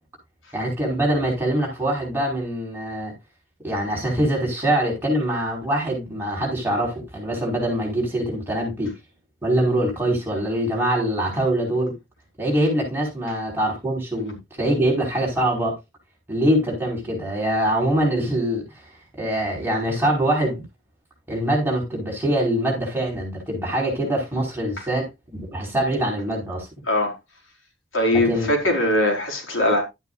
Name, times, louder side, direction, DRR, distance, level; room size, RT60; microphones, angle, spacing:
voice 1, 0.5-3.1 3.6-8.9 9.4-11.9 12.4-15.7 16.3-18.6 19.2-20.6 21.3-26.7 28.1-28.5, right 1 dB, 10° right, 4.9 m, -23 dB
voice 2, 27.9-29.8, left 1 dB, 85° left, 4.5 m, -21 dB
12.5 x 9.4 x 2.5 m
head